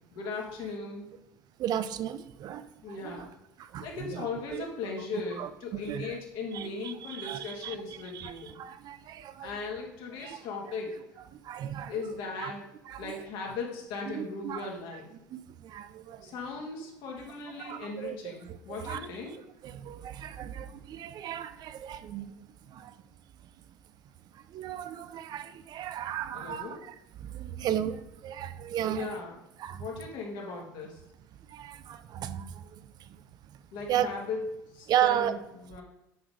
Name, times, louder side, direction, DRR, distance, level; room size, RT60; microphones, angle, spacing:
voice 1, 0.1-1.1 2.8-3.3 3.8-8.6 9.4-11.0 11.9-12.6 13.0-15.1 16.2-19.3 26.3-26.8 28.9-29.4 29.7-31.0 33.7-34.5 34.7-35.8, left 4 dB, 65° left, -1 dB, 2.1 m, -38 dB
voice 2, 1.6-2.6 3.2-3.3 3.6-4.7 5.4-6.2 6.5-7.8 8.1-9.5 10.2-10.4 11.3-11.9 12.4-12.5 12.9-13.2 14.1-14.7 15.3-16.3 17.6-18.2 18.7-19.0 19.6-22.9 24.3-29.1 29.6-29.8 31.5-33.1 33.9-34.1 34.9-35.3, right 11 dB, 50° right, 12 dB, 0.5 m, -35 dB
7.8 x 3.9 x 5.0 m, 0.87 s
supercardioid pair, 90°, 9 cm